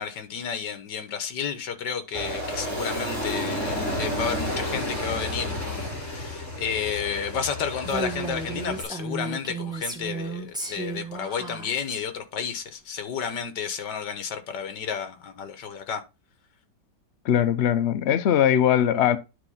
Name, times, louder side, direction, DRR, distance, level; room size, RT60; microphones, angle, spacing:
voice 1, 0.0-16.0, left 7 dB, 75° left, 1.8 m, -32 dB
Aircraft, 2.1-8.8, left 1 dB, 40° left, 4.7 m, -31 dB
Female speech woman speaking, 7.8-12.0, right 3 dB, 5° right, 1.2 m, -33 dB
voice 2, 17.2-19.2, left 10 dB, 60° left, 0.7 m, -20 dB
9.8 x 3.7 x 5.5 m
omnidirectional pair, 1.9 m